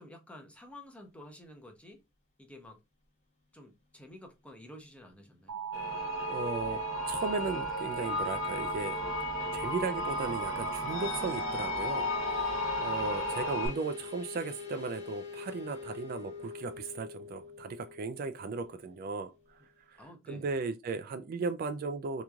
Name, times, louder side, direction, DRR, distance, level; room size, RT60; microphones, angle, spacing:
voice 1, 0.0-2.0 2.4-2.8 3.5-5.6 9.3-9.6 20.0-20.5, left 1 dB, 5° left, 0.7 m, -51 dB
Alarm, 5.5-13.7, right 8 dB, 80° right, 1.3 m, -37 dB
sound 1, 5.7-13.7, left 4 dB, 65° left, 0.7 m, -36 dB
voice 2, 6.3-9.0 9.5-19.3 19.9-20.0 20.3-22.2, right 4 dB, 45° right, 0.3 m, -36 dB
sound 2, 7.1-19.6, left 5 dB, 35° left, 1.2 m, -46 dB
3.6 x 3.0 x 2.3 m
head